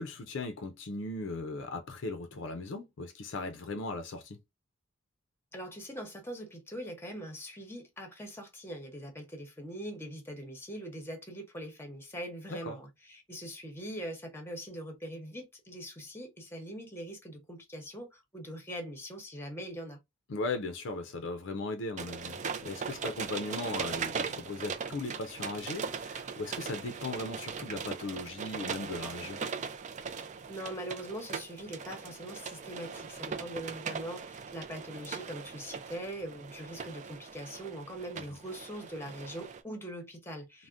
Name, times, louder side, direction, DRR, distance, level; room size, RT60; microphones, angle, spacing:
voice 1, 0.0-4.4 12.7-12.8 20.3-29.4 38.2-38.3, left 3 dB, 65° left, 0.5 m, -38 dB
voice 2, 5.5-20.0 30.5-40.7, right 1 dB, 10° left, 0.8 m, -42 dB
sound 1, 22.0-39.6, right 6 dB, 40° right, 0.4 m, -39 dB
3.4 x 2.1 x 2.5 m
head